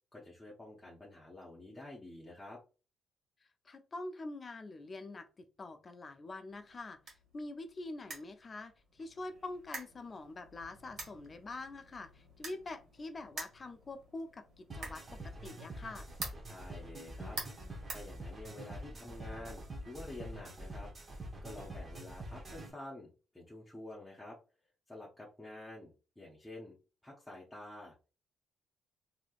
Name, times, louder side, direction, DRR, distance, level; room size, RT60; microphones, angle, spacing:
voice 1, 0.1-2.6 16.5-17.4 17.9-20.9 21.4-24.4 24.9-26.8 27.0-27.9, left 2 dB, 5° left, -5 dB, 0.9 m, -49 dB
voice 2, 3.6-7.0 7.3-16.1, left 2 dB, 35° left, 8 dB, 0.5 m, -45 dB
sound 1, 6.5-18.8, right 3 dB, 65° right, 1.4 m, -49 dB
sound 2, 14.7-22.7, right 1 dB, 35° right, 0.9 m, -46 dB
3.3 x 2.8 x 2.4 m, 0.34 s
cardioid pair, 90°, 0 cm